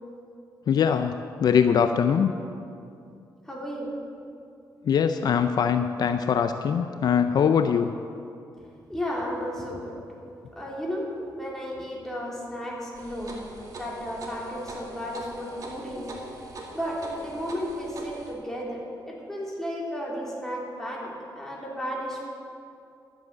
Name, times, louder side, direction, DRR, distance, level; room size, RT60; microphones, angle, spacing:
voice 1, 0.7-2.3 4.8-7.9, left 7 dB, 60° left, 8 dB, 0.5 m, -22 dB
voice 2, 3.4-3.9 8.6-9.9 10.6-13.4 13.8-16.0 16.7-22.3, equal, 5° left, -4 dB, 3.2 m, -33 dB
sound 1, 12.9-18.3, right 2 dB, 45° right, 2.1 m, -42 dB
12.0 x 7.7 x 8.0 m, 2.6 s
cardioid pair, 110°, 8 cm